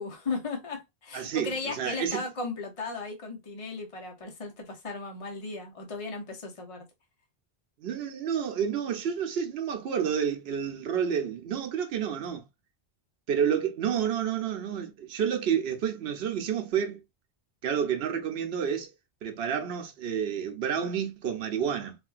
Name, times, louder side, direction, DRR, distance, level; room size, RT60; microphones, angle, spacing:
voice 1, 0.0-6.9, left 3 dB, 40° left, 0.7 m, -36 dB
voice 2, 1.1-2.2 7.8-12.4 13.3-17.0 17.6-18.9 19.2-22.0, right 8 dB, 75° right, 0.9 m, -29 dB
3.6 x 2.5 x 2.3 m
omnidirectional pair, 1.0 m